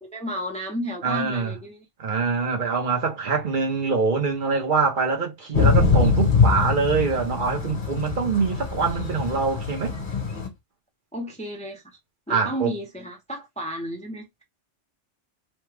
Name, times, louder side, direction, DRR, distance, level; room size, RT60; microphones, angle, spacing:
voice 1, 0.0-1.9 11.1-12.0 12.3-14.4, equal, 5° left, 0.6 m, -32 dB
voice 2, 1.0-1.5 2.0-9.9 12.3-12.7, right 4 dB, 45° right, 1.1 m, -24 dB
Thunder / Rain, 5.5-10.5, left 5 dB, 45° left, 1.2 m, -23 dB
3.2 x 2.2 x 3.3 m
omnidirectional pair, 1.2 m